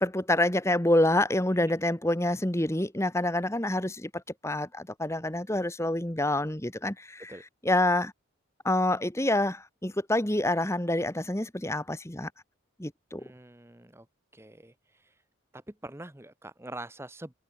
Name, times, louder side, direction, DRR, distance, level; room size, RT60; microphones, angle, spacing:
voice 1, 0.0-7.3 7.6-8.1 8.6-12.3 12.8-13.2, left 1 dB, 15° left, 1.5 m, -27 dB
voice 2, 13.2-14.1 14.3-15.1 15.5-17.3, right 1 dB, 10° right, 1.0 m, -44 dB
head